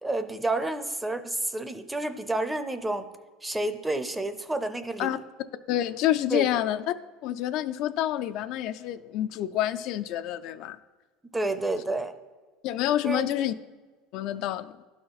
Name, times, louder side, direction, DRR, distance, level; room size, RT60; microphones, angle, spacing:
voice 1, 0.0-3.1 3.4-5.2 6.3-6.6 11.3-12.1 13.0-13.3, right 2 dB, 10° right, 9 dB, 0.5 m, -30 dB
voice 2, 5.7-6.9 7.2-10.8 12.6-13.5 14.1-14.8, left 12 dB, 60° left, 11 dB, 0.3 m, -28 dB
11.5 x 4.3 x 3.9 m, 1.4 s
supercardioid pair, 135°, 0 cm